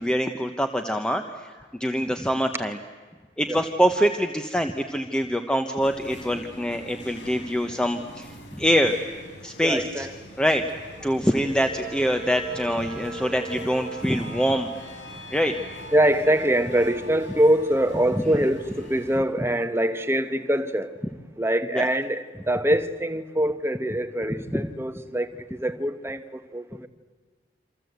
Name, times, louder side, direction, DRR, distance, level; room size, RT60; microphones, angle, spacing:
voice 1, 0.0-1.5 1.8-2.8 3.4-9.0 9.4-10.1 10.4-10.6 11.0-14.7 15.3-15.5 21.7-21.9 24.5-24.7, equal, 5° left, 1.0 m, -24 dB
sound 1, 5.8-19.2, equal, 90° left, 4.2 m, -45 dB
voice 2, 9.6-10.1 11.2-11.3 12.0-14.0 15.9-20.9 21.4-26.9, right 1 dB, 15° right, 1.1 m, -25 dB
sound 2, 11.4-21.0 21.4-21.5, equal, 70° left, 4.5 m, -45 dB
28.0 x 26.0 x 8.1 m
head